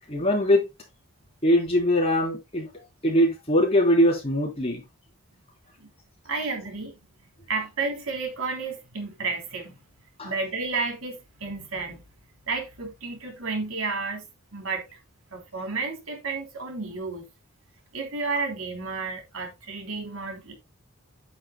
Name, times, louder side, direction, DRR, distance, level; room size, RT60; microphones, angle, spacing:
voice 1, 0.1-0.7 1.4-2.7 3.0-4.8 10.2-10.3, equal, 30° left, 3.6 m, -21 dB
voice 2, 6.2-7.0 7.5-9.8 10.2-12.0 12.5-14.2 14.5-14.8 15.3-17.3 17.9-20.6, right 4 dB, 70° right, 3.3 m, -31 dB
10.0 x 9.1 x 2.2 m
head